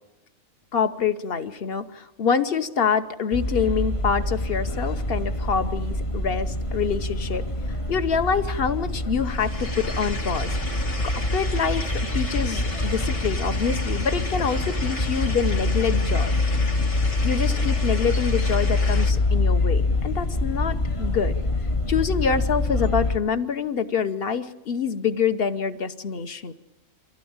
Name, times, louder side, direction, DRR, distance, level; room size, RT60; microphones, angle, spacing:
voice 1, 0.7-7.4 7.9-10.5 11.3-11.9 12.1-16.3 17.2-21.3 21.9-26.5, left 6 dB, 50° left, 10 dB, 1.1 m, -26 dB
sound 1, 3.3-23.2, left 2 dB, 30° left, 0.7 m, -25 dB
sound 2, 9.2-19.1, left 2 dB, 70° left, 3.0 m, -35 dB
24.5 x 16.0 x 8.8 m, 0.97 s
omnidirectional pair, 1.4 m